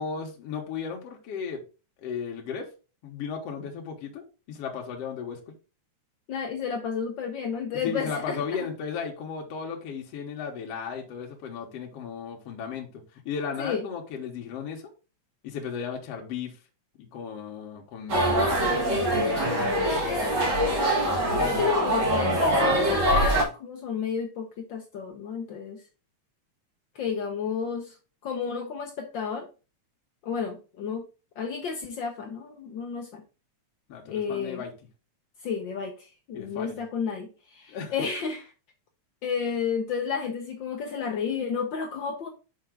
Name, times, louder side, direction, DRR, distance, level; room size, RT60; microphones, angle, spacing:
voice 1, 0.0-1.6 2.0-2.7 3.0-5.4 7.8-14.8 15.4-16.6 17.0-19.5 33.9-34.7 36.3-36.8 37.7-37.9, left 6 dB, 60° left, 2.1 m, -35 dB
voice 2, 6.3-8.4 13.6-13.8 19.8-20.3 21.4-25.8 26.9-27.9 28.2-29.5 30.2-31.0 31.4-33.2 34.0-34.6 35.4-38.5 39.2-42.3, left 6 dB, 85° left, 1.0 m, -31 dB
sound 1, 18.1-23.4, equal, 40° right, 2.2 m, -23 dB
5.9 x 5.6 x 3.7 m
omnidirectional pair, 3.3 m